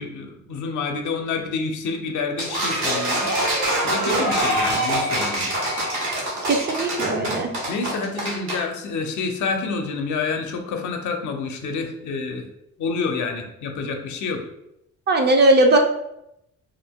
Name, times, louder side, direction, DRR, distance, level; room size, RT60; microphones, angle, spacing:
voice 1, 0.0-3.3 3.8-5.5 7.7-12.5 12.8-14.4, left 4 dB, 80° left, 4 dB, 0.6 m, -28 dB
sound 1, 2.4-8.6, right 1 dB, 70° right, 1.2 m, -24 dB
voice 2, 6.5-7.5 15.1-15.8, right 2 dB, 35° right, 3 dB, 0.5 m, -18 dB
2.5 x 2.2 x 3.5 m, 0.81 s
cardioid pair, 90°, 30 cm